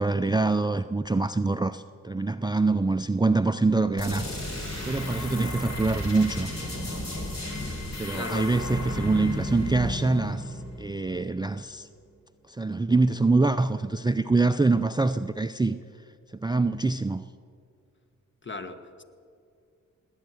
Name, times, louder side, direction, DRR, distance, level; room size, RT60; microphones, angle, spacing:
voice 1, 0.0-4.4 4.9-6.5 8.0-11.9 12.5-15.8 16.3-17.2, right 3 dB, 15° right, 12 dB, 0.5 m, -25 dB
sound 1, 4.0-11.5, left 1 dB, 50° left, 4.4 m, -34 dB
voice 2, 8.1-8.5 18.4-19.0, left 2 dB, 35° left, 9 dB, 1.4 m, -36 dB
19.0 x 9.4 x 7.9 m, 2.3 s
cardioid pair, 50°, 34 cm